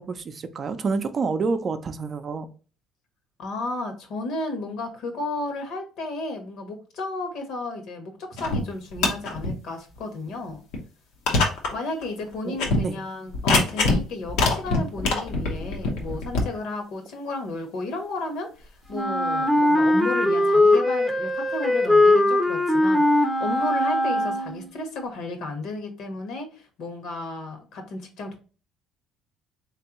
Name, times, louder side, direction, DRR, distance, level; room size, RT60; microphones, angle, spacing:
voice 1, 0.0-2.5 12.5-13.0, right 4 dB, 40° right, 0.5 m, -28 dB
voice 2, 3.4-10.6 11.7-28.4, left 2 dB, 70° left, 1.2 m, -33 dB
sound 1, 8.4-8.6 8.9-9.5 10.0-10.1 10.7-10.8 11.3-11.7 12.0-12.1 12.5-12.8 13.3-14.0 14.3-16.4, left 3 dB, 90° left, 1.0 m, -23 dB
Wind instrument woodwind instrument, 18.9-24.7, left 1 dB, ahead, 0.6 m, -20 dB
3.5 x 3.2 x 3.0 m
cardioid pair, 105°, 0 cm